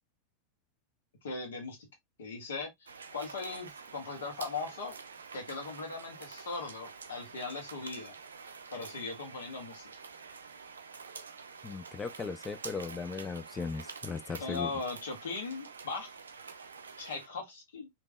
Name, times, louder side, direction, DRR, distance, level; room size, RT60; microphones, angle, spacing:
voice 1, 1.2-1.8 2.2-4.9 5.3-8.2 8.7-9.9 14.4-16.2 17.0-17.9, left 4 dB, 60° left, 1.5 m, -39 dB
sound 1, 2.9-17.3, right 5 dB, 70° right, 0.4 m, -48 dB
voice 2, 11.6-14.7, left 4 dB, 15° left, 0.4 m, -37 dB
3.4 x 2.9 x 2.2 m
figure-of-eight pair, 90°, 0 cm